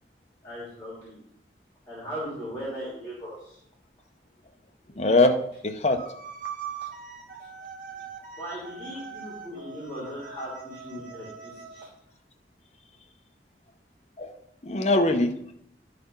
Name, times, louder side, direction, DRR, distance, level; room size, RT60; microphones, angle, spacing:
voice 1, 0.4-1.2 1.9-3.6 8.4-11.9, equal, 10° left, -7 dB, 3.2 m, -38 dB
voice 2, 5.0-5.3 5.6-6.0 14.2-14.4 14.6-15.5, left 2 dB, 40° left, 5 dB, 0.8 m, -22 dB
sound 1, 6.0-11.9, right 7 dB, 45° right, 1.2 m, -41 dB
11.5 x 4.2 x 5.5 m, 0.72 s
head